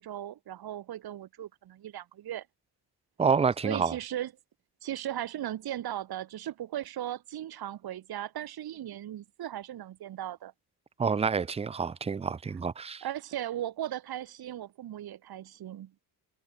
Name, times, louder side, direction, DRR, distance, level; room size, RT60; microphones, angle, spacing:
voice 1, 0.0-2.5 3.6-4.3 4.8-10.5 13.0-15.9, right 12 dB, 60° right, 3.0 m, -37 dB
voice 2, 3.2-3.9 11.0-13.0, right 5 dB, 15° right, 0.4 m, -28 dB
cardioid pair, 180°, 41 cm